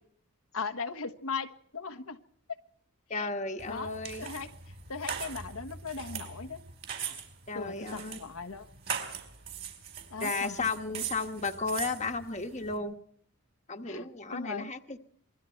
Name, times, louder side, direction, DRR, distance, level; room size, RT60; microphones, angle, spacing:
voice 1, 0.5-2.2 3.1-3.3 3.7-3.9 4.2-4.5 4.9-6.6 7.0-7.2 7.5-8.7 10.1-10.7 13.9-14.7, left 5 dB, 80° left, 6 dB, 1.3 m, -38 dB
voice 2, 3.1-4.2 7.5-8.2 10.2-13.0 13.7-15.0, left 3 dB, 30° left, 5 dB, 1.4 m, -34 dB
sound 1, 3.6-12.8, right 7 dB, 50° right, 4.6 m, -41 dB
28.0 x 22.5 x 4.6 m, 0.63 s
head